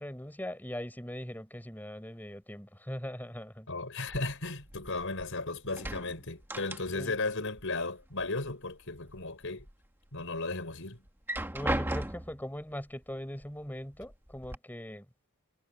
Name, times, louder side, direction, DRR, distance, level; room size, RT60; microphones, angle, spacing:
voice 1, 0.0-3.7 6.9-7.2 11.5-15.1, equal, 10° left, 6.7 m, -40 dB
voice 2, 3.7-9.7 10.1-11.0, left 3 dB, 60° left, 5.9 m, -35 dB
sound 1, 4.1-5.3 5.6-7.3 7.5-8.5 8.9-9.7 10.2-10.3 11.1-12.5 13.4-13.5 13.9-14.6, right 1 dB, 10° right, 1.4 m, -36 dB
head